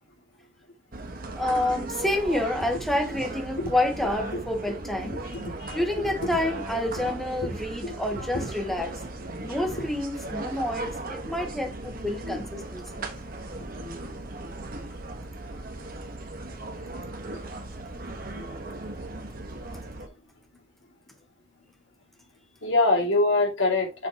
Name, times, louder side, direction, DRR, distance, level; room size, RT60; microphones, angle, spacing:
sound 1, 0.9-20.1, right 2 dB, 50° right, 1.3 m, -37 dB
voice 1, 1.4-5.2 5.7-8.9 9.4-13.1, left 1 dB, ahead, 1.2 m, -28 dB
voice 2, 5.3-6.1 7.8-7.9 22.6-24.1, left 2 dB, 75° left, 2.7 m, -24 dB
6.9 x 6.3 x 2.9 m
head